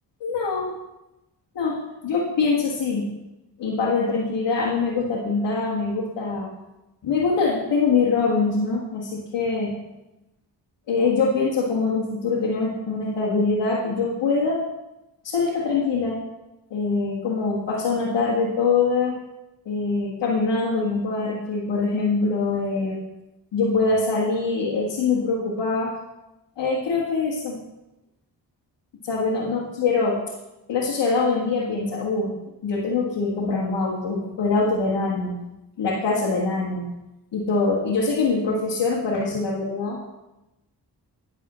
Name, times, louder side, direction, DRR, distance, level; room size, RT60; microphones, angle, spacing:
voice 1, 0.2-0.8 1.6-3.1 3.6-6.5 7.0-9.7 10.9-14.6 15.2-16.2 16.7-19.1 19.7-23.0 23.5-25.9 26.6-27.6 29.0-30.2 30.7-32.3 32.6-35.4 35.8-36.9 37.3-40.0, left 4 dB, 90° left, -5 dB, 1.8 m, -23 dB
10.0 x 4.1 x 7.3 m, 0.96 s
cardioid pair, 50°, 42 cm